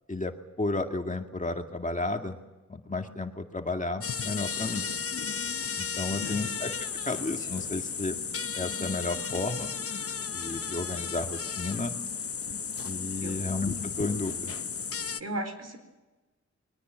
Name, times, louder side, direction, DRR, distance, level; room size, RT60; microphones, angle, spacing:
voice 1, 0.1-2.4 2.7-4.9 6.0-6.7 7.0-8.2 8.5-9.7 10.3-11.9 12.8-14.5, left 2 dB, 25° left, 4 dB, 2.1 m, -32 dB
sound 1, 4.0-15.2, left 6 dB, 50° left, 0.9 m, -34 dB
voice 2, 6.1-6.4 13.2-13.4 15.2-15.8, right 1 dB, 55° right, 7 dB, 4.2 m, -36 dB
22.5 x 19.5 x 7.7 m, 1.1 s
cardioid pair, 60°, 29 cm